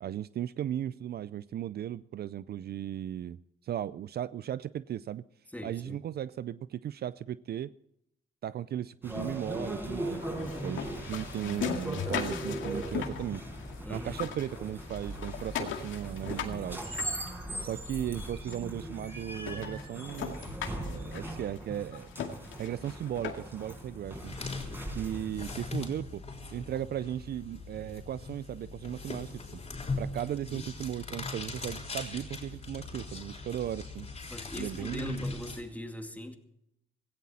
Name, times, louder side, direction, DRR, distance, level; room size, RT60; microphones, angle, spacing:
voice 1, 0.0-3.4 3.6-5.2 5.6-7.7 8.4-13.5 13.9-16.8 17.6-20.4 20.7-22.1 22.6-24.3 24.9-26.2 26.5-29.6 30.0-34.1 34.6-35.2, right 11 dB, 55° right, 17 dB, 0.4 m, -36 dB
voice 2, 5.5-6.0 13.8-14.2 30.5-30.7 34.3-36.3, left 1 dB, 10° left, 5 dB, 2.3 m, -41 dB
sound 1, 9.0-25.5, right 1 dB, 10° right, 5.5 m, -39 dB
sound 2, 10.1-13.8 14.1-17.8 18.5-18.6 19.0-19.1 19.4-23.7, left 8 dB, 80° left, 2.1 m, -39 dB
sound 3, 23.8-35.6, left 3 dB, 30° left, 3.8 m, -40 dB
17.0 x 16.0 x 4.2 m, 0.78 s
cardioid pair, 90°, 20 cm